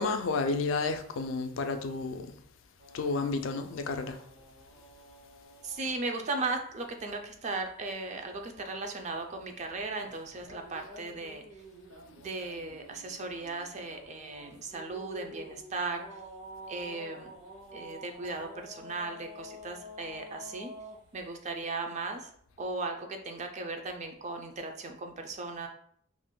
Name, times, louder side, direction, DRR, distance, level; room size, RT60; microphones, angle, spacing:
voice 1, 0.0-2.3 2.9-4.2, left 3 dB, 75° left, 0.3 m, -31 dB
sound 1, 2.8-6.0 10.0-21.0, equal, 65° right, 0.8 m, -49 dB
voice 2, 5.6-11.4 12.2-16.2 16.7-17.3 17.7-20.7 21.1-22.3 22.6-25.7, right 3 dB, 35° right, 0.4 m, -37 dB
2.5 x 2.1 x 3.6 m
head